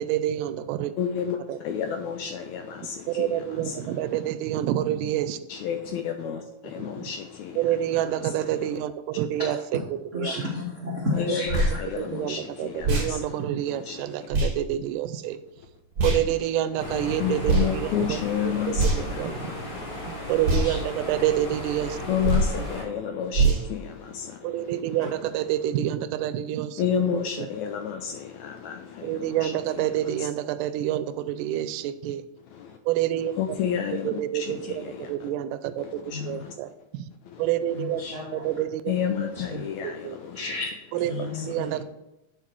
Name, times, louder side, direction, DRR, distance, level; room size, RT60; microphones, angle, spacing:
voice 1, 0.0-0.9 1.5-1.6 3.1-5.4 6.8-7.1 7.6-9.6 10.2-10.4 12.0-15.4 16.0-18.2 18.5-18.9 19.2-19.7 20.3-22.0 22.6-22.7 24.4-26.8 27.4-27.5 29.0-32.2 32.9-33.3 34.0-37.1 37.4-38.0 38.3-38.9 39.8-40.2 40.9-41.8, right 12 dB, 85° right, 2.1 m, -28 dB
voice 2, 1.0-4.1 5.5-8.7 11.2-13.4 13.7-14.3 17.2-19.9 22.1-25.0 26.8-30.3 32.5-32.8 33.4-35.3 35.8-36.5 37.3-37.5 38.1-38.5 38.9-40.6 41.2-41.8, left 8 dB, 80° left, 1.7 m, -31 dB
voice 3, 10.1-12.2 13.3-13.6 20.5-21.1 25.0-25.1 29.5-29.6 29.9-30.1 36.1-36.4 37.7-38.5 39.3-39.7 40.3-41.8, left 2 dB, 70° right, 0.7 m, -33 dB
sound 1, 11.5-11.7 12.8-13.1 14.3-14.5 16.0-16.2 17.4-17.7 18.7-19.2 20.4-20.7 22.2-22.5 23.3-23.6, right 2 dB, 45° right, 1.2 m, -22 dB
sound 2, 16.8-22.8, left 1 dB, 60° left, 4.1 m, -35 dB
11.0 x 4.6 x 4.5 m
omnidirectional pair, 3.7 m